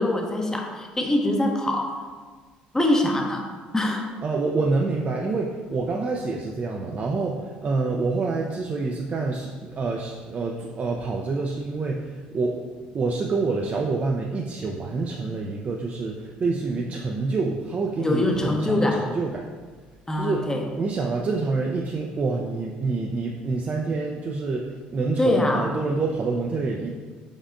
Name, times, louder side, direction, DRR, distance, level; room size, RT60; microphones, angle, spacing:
voice 1, 0.0-2.0 2.7-3.5 3.7-4.1 18.0-19.1 20.1-20.6 25.2-25.7, left 1 dB, 15° left, 2 dB, 0.7 m, -23 dB
voice 2, 4.2-19.5 20.1-26.9, right 3 dB, 35° right, -1 dB, 0.4 m, -27 dB
5.3 x 3.6 x 2.5 m, 1.5 s
hypercardioid pair, 60°, 4 cm